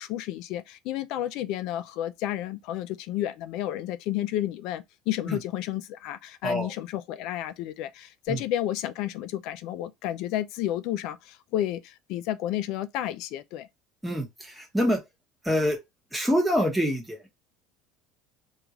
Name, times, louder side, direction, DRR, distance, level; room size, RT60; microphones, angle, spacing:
voice 1, 0.0-13.7, left 13 dB, 55° left, 0.4 m, -31 dB
voice 2, 14.0-15.0 15.4-15.8 16.1-17.3, equal, 5° right, 0.9 m, -26 dB
3.7 x 2.4 x 2.8 m
cardioid pair, 165°, 0 cm